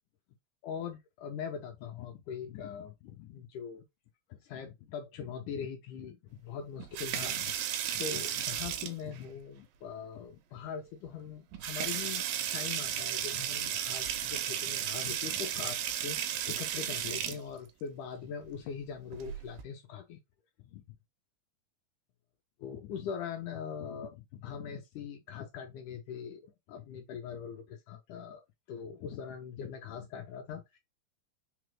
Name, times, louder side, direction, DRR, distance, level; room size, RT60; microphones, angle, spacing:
voice 1, 0.6-3.8 4.3-7.6 7.9-20.2 20.7-20.8 22.6-28.4 28.7-30.8, left 7 dB, 85° left, 1.8 m, -42 dB
sound 1, 6.8-9.2 10.6-10.7 11.1-11.2 11.5-17.4 19.1-19.6, right 10 dB, 85° right, 2.3 m, -34 dB
5.8 x 2.0 x 3.0 m
omnidirectional pair, 4.0 m